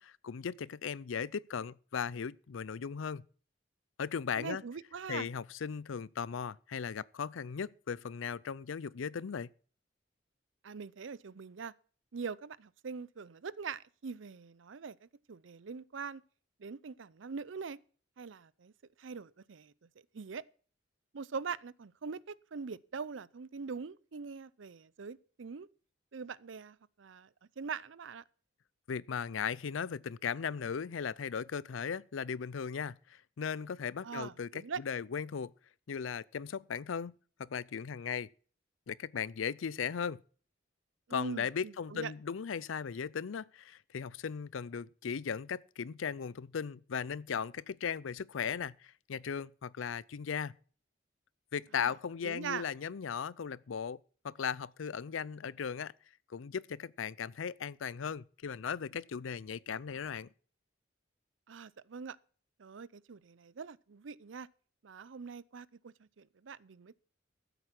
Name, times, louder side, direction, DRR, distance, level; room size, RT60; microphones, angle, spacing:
voice 1, 0.0-3.2 4.0-4.6 5.1-9.5 28.9-35.5 35.9-38.3 38.9-40.2 41.1-50.5 51.5-54.0 54.2-55.9 56.3-60.3, left 6 dB, 85° left, 0.5 m, -37 dB
voice 2, 4.4-5.3 10.6-11.7 12.1-16.2 16.6-17.8 18.2-18.7 19.0-19.7 20.1-20.4 21.1-25.7 26.1-27.3 27.6-28.2 34.0-34.8 41.1-42.1 51.8-51.9 52.2-52.6 61.5-62.2 62.6-64.5 64.8-66.9, right 5 dB, 75° right, 0.6 m, -43 dB
14.0 x 8.2 x 5.9 m
head